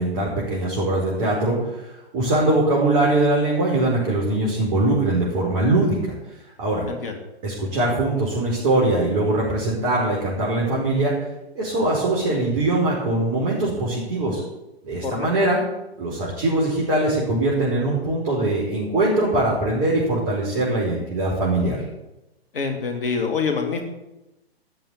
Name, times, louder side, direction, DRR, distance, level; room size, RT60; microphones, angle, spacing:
voice 1, 0.0-6.1 6.6-6.9 7.4-11.1 11.6-14.4 14.8-15.6 16.0-21.8, right 2 dB, 35° right, -5 dB, 5.2 m, -22 dB
voice 2, 6.9-7.2 15.0-15.3 22.5-23.8, left 5 dB, 60° left, 4 dB, 2.7 m, -25 dB
13.5 x 7.2 x 9.5 m, 0.94 s
figure-of-eight pair, 120°, 32 cm